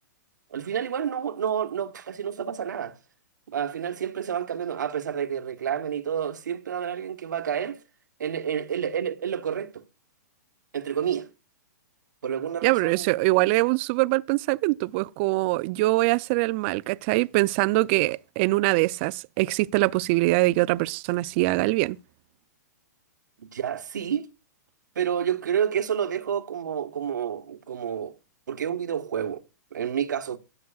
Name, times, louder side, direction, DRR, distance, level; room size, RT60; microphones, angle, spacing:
voice 1, 0.5-2.9 3.5-7.8 8.2-9.8 10.7-11.3 12.2-13.3 23.4-24.3 24.9-28.2 28.5-29.4 29.7-30.4, right 8 dB, 80° right, 1.3 m, -29 dB
voice 2, 12.6-22.0, right 21 dB, 40° right, 0.5 m, -23 dB
23.0 x 7.9 x 2.4 m
hypercardioid pair, 135°, 10 cm